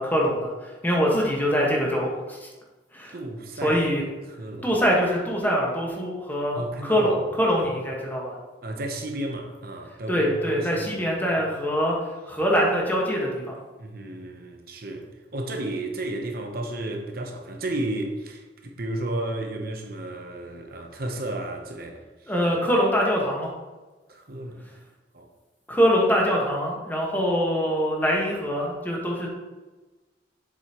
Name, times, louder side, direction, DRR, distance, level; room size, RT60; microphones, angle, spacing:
voice 1, 0.0-2.5 2.9-3.1 3.6-4.0 4.6-8.3 10.1-12.0 12.3-13.5 22.3-23.5 25.7-29.3, equal, 10° left, -2 dB, 1.5 m, -24 dB
voice 2, 3.1-3.9 4.3-4.7 6.5-7.2 7.6-7.8 8.6-11.5 13.8-22.3 24.1-24.7 25.1-25.3, right 1 dB, 55° right, 2 dB, 0.9 m, -33 dB
7.5 x 7.1 x 3.0 m, 1.2 s
head